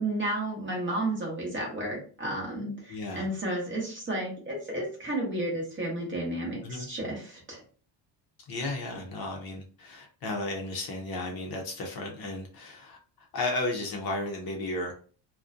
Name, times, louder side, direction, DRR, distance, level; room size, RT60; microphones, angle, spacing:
voice 1, 0.0-7.6, right 1 dB, 25° right, -2 dB, 0.7 m, -32 dB
voice 2, 2.9-3.3 6.6-6.9 8.5-14.9, left 2 dB, 50° left, 2 dB, 0.5 m, -34 dB
2.4 x 2.1 x 2.4 m, 0.41 s
cardioid pair, 170°, 49 cm